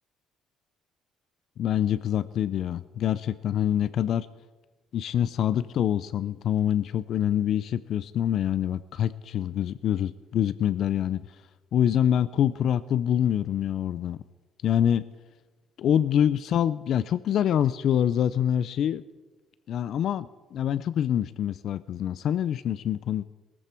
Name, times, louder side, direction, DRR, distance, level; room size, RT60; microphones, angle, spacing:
voice 1, 1.6-4.3 4.9-11.2 11.7-14.2 14.6-15.0 15.8-19.0 19.7-23.2, left 10 dB, 45° left, 16 dB, 0.4 m, -25 dB
21.5 x 14.0 x 4.4 m, 1.2 s
cardioid pair, 175°, 0 cm